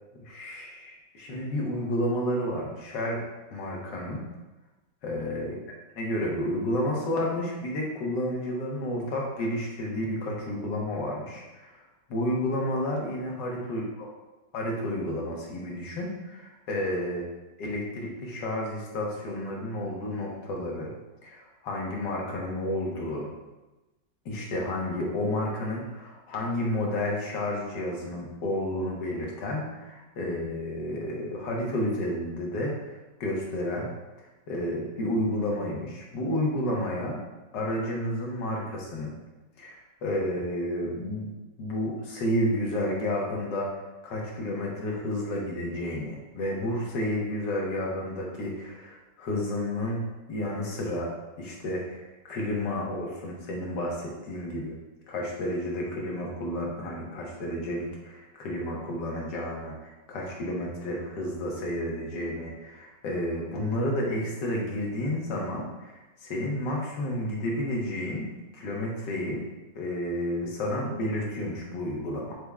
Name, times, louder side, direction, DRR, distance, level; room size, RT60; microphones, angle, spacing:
voice 1, 0.3-3.2 3.5-4.2 5.0-5.6 6.0-11.8 12.1-13.8 14.5-17.2 17.6-20.9 21.2-23.3 24.2-32.9 33.2-33.9 34.2-37.2 37.5-39.1 39.6-41.3 41.6-50.0 50.3-51.1 51.4-54.7 55.1-68.3 68.5-69.4 69.7-72.3, left 1 dB, 75° left, -2 dB, 1.5 m, -31 dB
6.0 x 2.1 x 3.4 m, 1.1 s
omnidirectional pair, 1.9 m